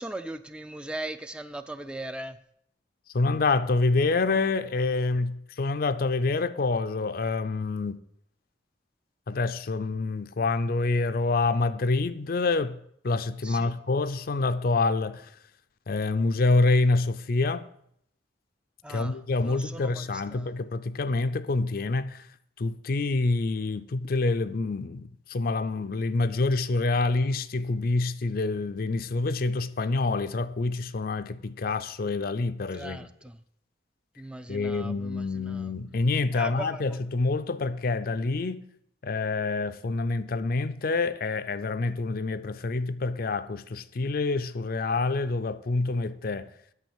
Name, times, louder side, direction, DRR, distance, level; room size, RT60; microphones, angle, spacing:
voice 1, 0.0-2.4 13.4-13.7 18.8-19.1 19.4-20.0 20.3-20.5 32.7-33.4 34.2-35.7 36.3-36.8, right 1 dB, 5° right, 0.4 m, -38 dB
voice 2, 3.1-8.0 9.3-12.8 13.0-15.3 15.9-17.6 18.9-22.3 22.6-33.1 34.5-38.6 39.0-46.5, left 3 dB, 55° left, 0.5 m, -27 dB
9.1 x 6.3 x 7.1 m
head